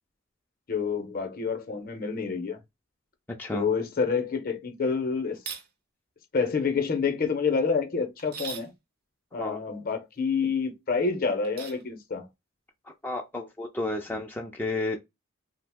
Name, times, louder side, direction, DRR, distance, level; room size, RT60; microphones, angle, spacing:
voice 1, 0.7-2.6 3.5-5.4 6.3-8.7 9.3-12.3, left 5 dB, 45° left, 0.6 m, -28 dB
sound 1, 5.3-5.7 8.2-8.7 11.4-11.8, right 6 dB, 50° right, 0.5 m, -39 dB
voice 2, 13.0-15.0, left 2 dB, 10° left, 0.3 m, -32 dB
2.8 x 2.0 x 3.3 m
head